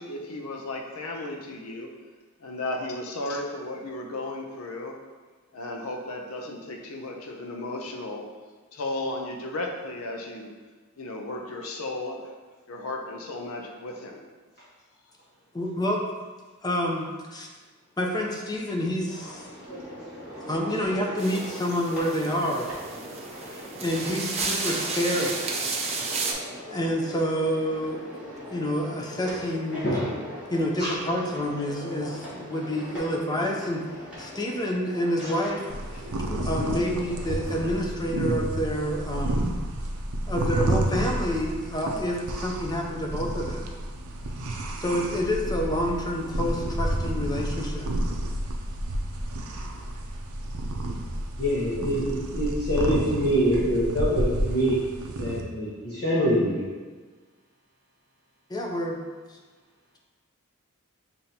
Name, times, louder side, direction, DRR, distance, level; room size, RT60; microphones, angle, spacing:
voice 1, 0.0-1.9 2.4-4.9 5.5-8.3 8.7-10.5 11.0-12.3 12.7-14.3, left 2 dB, 80° left, 1 dB, 0.6 m, -34 dB
voice 2, 15.5-16.0 16.6-17.5 18.0-19.5 20.5-22.7 23.4-25.5 26.7-28.0 28.5-29.9 30.5-35.6 36.3-39.4 40.3-43.7 44.8-47.9 58.5-59.0, equal, 20° left, 0 dB, 0.6 m, -28 dB
sound 1, 19.1-37.7, equal, 5° right, 1.3 m, -41 dB
sound 2, 21.2-26.3, right 4 dB, 30° right, 0.5 m, -32 dB
sound 3, 35.7-55.4, right 1 dB, 80° right, 0.5 m, -30 dB
voice 3, 51.4-54.8 55.2-56.6, equal, 50° left, -10 dB, 1.0 m, -25 dB
6.9 x 2.7 x 2.8 m, 1.4 s
head